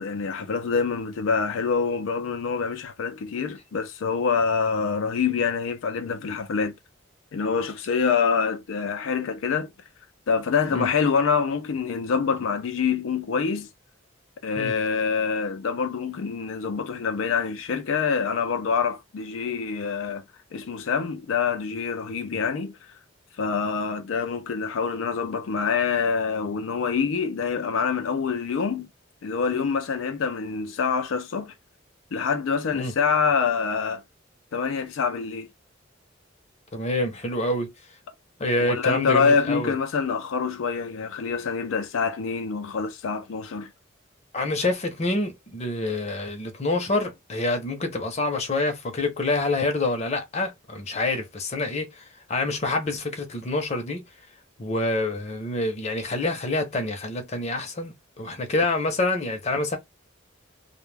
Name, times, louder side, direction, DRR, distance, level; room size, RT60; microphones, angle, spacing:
voice 1, 0.0-6.7 7.3-9.7 10.3-13.7 14.4-20.2 20.5-23.0 23.4-28.9 29.2-31.5 32.1-34.0 34.5-35.5 38.6-43.7, left 5 dB, 80° left, 0.4 m, -26 dB
voice 2, 36.7-37.7 38.4-39.7 44.3-54.0 54.6-59.8, left 2 dB, 35° left, 0.7 m, -27 dB
2.2 x 2.2 x 3.2 m
head